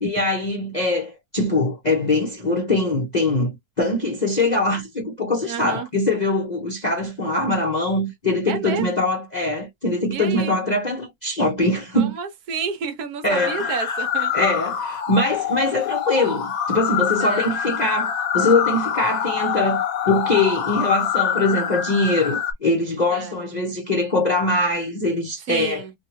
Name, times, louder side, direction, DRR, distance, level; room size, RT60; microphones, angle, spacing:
voice 1, 0.0-12.1 13.2-13.9 14.3-25.8, left 2 dB, 40° left, 0.6 m, -22 dB
voice 2, 5.4-5.9 8.5-8.9 10.1-10.5 11.9-14.3 17.2-17.7 23.1-23.3 25.5-25.9, right 6 dB, 70° right, 1.2 m, -30 dB
sound 1, 13.3-22.5, left 8 dB, 65° left, 1.1 m, -25 dB
2.9 x 2.8 x 2.8 m
omnidirectional pair, 1.8 m